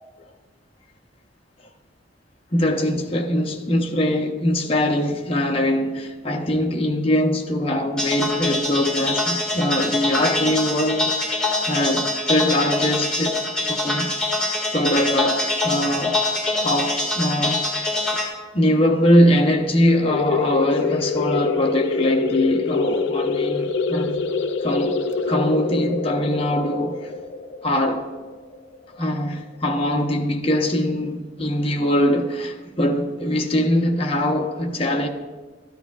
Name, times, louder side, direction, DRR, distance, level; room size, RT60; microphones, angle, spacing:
voice 1, 2.5-11.1 11.4-13.4 13.7-14.1 14.7-16.2 16.6-17.7 18.5-24.2 24.6-25.0 25.3-27.1 27.6-28.1 29.0-35.1, left 1 dB, 30° left, 0.8 m, -22 dB
sound 1, 8.0-18.3, left 2 dB, 5° left, 1.9 m, -24 dB
sound 2, 20.0-29.4, left 4 dB, 70° left, 0.5 m, -25 dB
13.0 x 10.0 x 2.4 m
head